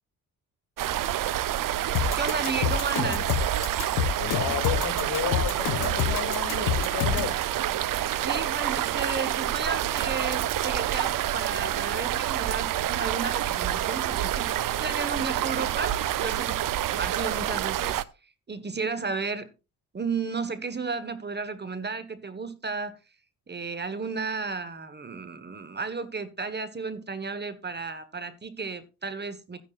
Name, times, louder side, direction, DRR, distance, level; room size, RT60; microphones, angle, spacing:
sound 1, 0.8-18.0, right 12 dB, 60° right, 0.7 m, -28 dB
voice 1, 1.7-3.4 7.1-7.2 7.8-14.5 14.8-16.6 16.9-18.0 18.5-19.5 19.9-23.0 23.5-29.6, right 4 dB, 25° right, 1.4 m, -33 dB
sound 2, 1.9-7.3, left 8 dB, 90° left, 1.3 m, -27 dB
voice 2, 4.2-7.4, left 10 dB, 65° left, 2.6 m, -32 dB
12.5 x 10.0 x 2.5 m
supercardioid pair, 65°, 37 cm